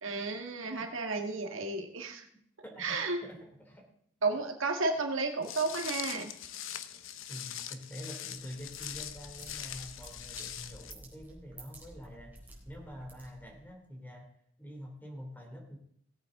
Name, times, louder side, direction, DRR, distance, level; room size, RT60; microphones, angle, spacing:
voice 1, 0.0-2.3 2.8-3.2 4.2-6.3, right 3 dB, 85° right, 4 dB, 1.8 m, -32 dB
voice 2, 2.3-3.9 7.3-12.4 12.6-14.3 14.6-15.8, equal, 10° left, 2 dB, 3.1 m, -46 dB
Walk footsteps, 5.4-10.9, left 10 dB, 75° left, 0.8 m, -42 dB
sound 1, 8.5-13.7, right 1 dB, 10° right, 4.0 m, -52 dB
18.0 x 8.3 x 3.8 m, 0.68 s
head